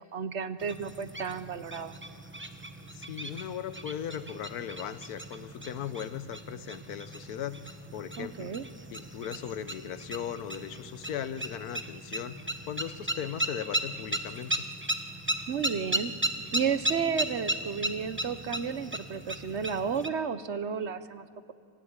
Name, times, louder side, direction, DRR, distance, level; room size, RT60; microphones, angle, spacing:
voice 1, 0.0-2.0 8.2-8.7 15.5-16.1 16.5-21.5, right 6 dB, 55° right, 12 dB, 1.0 m, -32 dB
sound 1, 0.6-20.1, right 1 dB, 10° right, 0.8 m, -36 dB
voice 2, 2.9-8.6 8.9-14.7, left 9 dB, 85° left, 13 dB, 1.4 m, -38 dB
25.5 x 16.5 x 9.5 m, 2.7 s
omnidirectional pair, 1.6 m